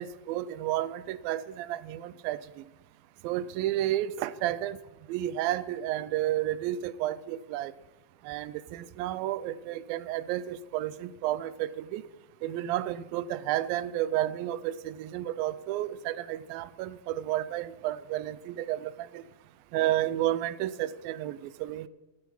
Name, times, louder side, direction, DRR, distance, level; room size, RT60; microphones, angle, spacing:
voice 1, 0.0-2.4 3.2-4.8 5.1-7.7 8.3-12.0 12.4-19.2 19.7-21.9, right 13 dB, 85° right, 17 dB, 2.3 m, -31 dB
16.0 x 10.5 x 5.4 m, 1.1 s
omnidirectional pair, 4.2 m